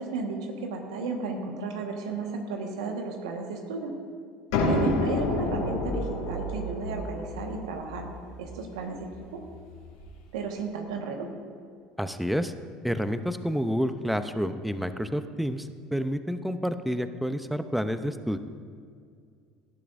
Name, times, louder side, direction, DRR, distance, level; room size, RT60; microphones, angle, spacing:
voice 1, 0.0-3.9 4.6-8.1 8.4-9.4 10.3-11.3, right 4 dB, 85° right, 3 dB, 1.5 m, -34 dB
sound 1, 4.5-10.1, left 2 dB, 80° left, 3.2 m, -30 dB
voice 2, 12.0-12.5 12.8-18.4, equal, ahead, 10 dB, 0.7 m, -29 dB
18.0 x 11.0 x 2.6 m, 2.2 s
hypercardioid pair, 80°, 3 cm